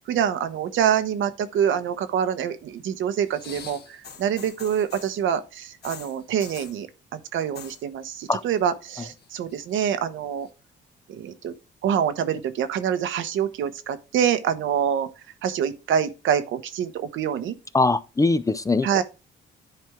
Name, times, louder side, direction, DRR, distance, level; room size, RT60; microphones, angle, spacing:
voice 1, 0.1-6.9 7.1-10.5 11.1-11.5 11.8-15.1 15.4-17.5 18.8-19.0, right 8 dB, 75° right, 1.0 m, -26 dB
sound 1, 3.2-5.2 5.8-6.8 7.4-7.8 8.1-8.6 8.9-9.7 10.5-10.6, left 6 dB, 55° left, 1.5 m, -44 dB
voice 2, 17.7-19.0, left 3 dB, 15° left, 0.5 m, -22 dB
10.0 x 4.4 x 3.6 m
cardioid pair, 90°, 20 cm